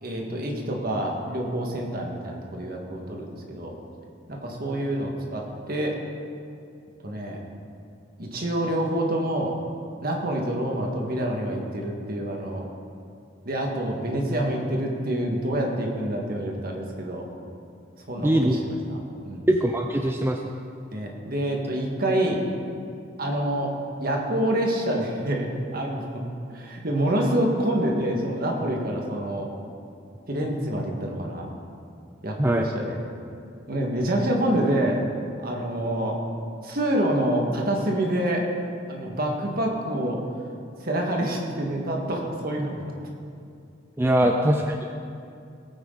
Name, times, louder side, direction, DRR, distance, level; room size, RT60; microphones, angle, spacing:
voice 1, 0.0-3.8 4.3-6.0 7.0-7.4 8.2-9.6 10.0-12.6 13.5-17.2 18.1-19.5 20.9-22.4 23.2-29.5 30.3-31.5 32.2-33.0 33.7-35.0 35.4-36.2 36.6-38.5 38.9-40.2 40.8-42.9, right 1 dB, 50° right, 0 dB, 1.8 m, -27 dB
voice 2, 18.2-18.6 19.5-20.4 32.4-32.7 44.0-44.8, right 1 dB, 10° right, 3 dB, 0.5 m, -22 dB
17.5 x 9.3 x 4.0 m, 2.5 s
head